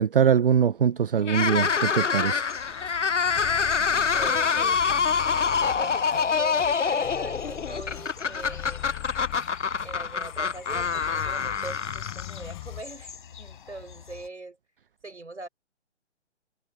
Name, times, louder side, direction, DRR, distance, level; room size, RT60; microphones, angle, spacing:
voice 1, 0.0-2.5, right 8 dB, 50° right, 0.6 m, -22 dB
sound 1, 1.2-12.5, left 6 dB, 90° left, 0.6 m, -26 dB
sound 2, 2.2-14.3, left 7 dB, 45° left, 5.1 m, -47 dB
sound 3, 2.6-12.8, left 18 dB, 30° left, 7.0 m, -42 dB
voice 2, 4.1-4.8 5.6-9.0 9.8-14.6 15.0-15.5, right 2 dB, 80° right, 5.6 m, -41 dB
figure-of-eight pair, 135°, 35 cm